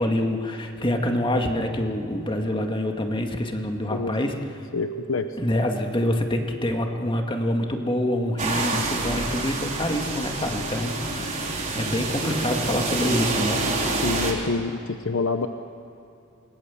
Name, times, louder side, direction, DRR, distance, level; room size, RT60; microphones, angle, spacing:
voice 1, 0.0-4.4 5.4-13.6, left 1 dB, 25° left, 3 dB, 2.0 m, -26 dB
voice 2, 4.7-5.4 14.0-15.5, left 3 dB, 65° left, 8 dB, 0.9 m, -27 dB
sound 1, 8.4-14.3, right 3 dB, 35° right, 4.2 m, -27 dB
28.5 x 21.0 x 7.3 m, 2.6 s
head